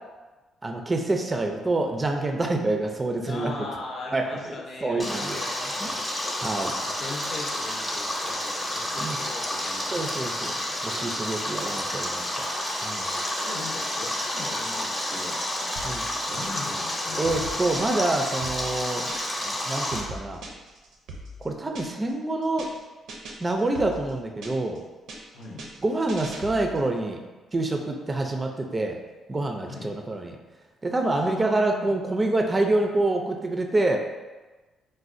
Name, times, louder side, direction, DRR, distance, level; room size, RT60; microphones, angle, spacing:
voice 1, 0.6-3.5 4.1-4.4 4.8-5.4 5.8-6.0 6.4-6.8 9.0-9.2 9.9-10.5 10.8-12.5 12.8-13.2 15.8-16.1 17.2-19.1 19.5-20.4 21.4-22.7 23.4-24.8 25.8-27.2 27.5-29.0 29.3-30.4 30.8-34.0, right 2 dB, 25° right, 3 dB, 0.3 m, -26 dB
voice 2, 3.2-6.4 6.8-12.1 13.2-15.7 16.3-17.5 25.3-25.7 29.6-30.0 31.0-31.9, left 3 dB, 55° left, -1 dB, 0.6 m, -41 dB
Stream, 5.0-20.0, left 1 dB, 15° left, 0.6 m, -30 dB
sound 1, 15.8-16.8 17.1-19.5 19.8-22.1 22.4-22.8 23.1-24.8 25.1-26.9, right 1 dB, 80° right, 0.5 m, -41 dB
4.0 x 2.1 x 2.5 m, 1.2 s
cardioid pair, 90°, 0 cm